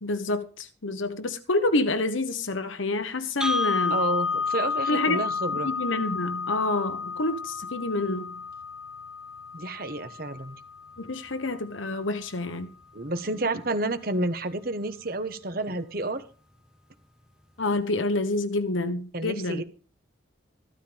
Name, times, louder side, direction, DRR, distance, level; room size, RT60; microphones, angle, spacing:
voice 1, 0.0-4.0 4.9-5.2 5.6-8.3 11.0-12.7 17.6-19.6, left 2 dB, 80° left, 1.2 m, -28 dB
sound 1, 3.4-11.4, left 5 dB, 5° right, 0.7 m, -31 dB
voice 2, 3.9-5.7 9.5-10.6 12.9-16.2 19.1-19.6, right 2 dB, 45° right, 1.3 m, -30 dB
14.5 x 12.5 x 3.5 m
head